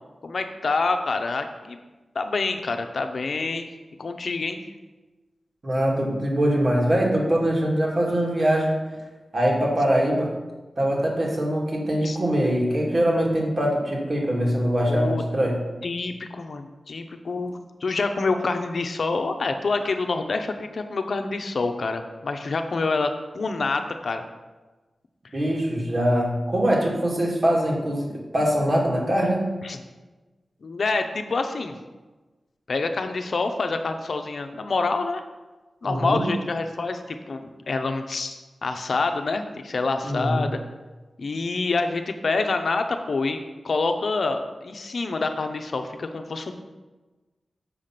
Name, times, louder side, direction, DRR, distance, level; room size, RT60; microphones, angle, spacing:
voice 1, 0.2-1.8 2.1-3.7 4.0-4.6 12.0-12.2 14.9-15.2 15.8-24.2 29.6-29.8 30.6-31.8 32.7-35.2 35.8-40.6 41.2-43.4 43.6-46.5, left 3 dB, 70° left, 7 dB, 0.7 m, -27 dB
voice 2, 5.6-8.8 9.3-10.3 10.8-15.6 25.3-29.5 35.8-36.3 40.0-40.5, equal, 50° right, -2 dB, 2.2 m, -23 dB
6.9 x 5.1 x 5.8 m, 1.2 s
cardioid pair, 55°, 0 cm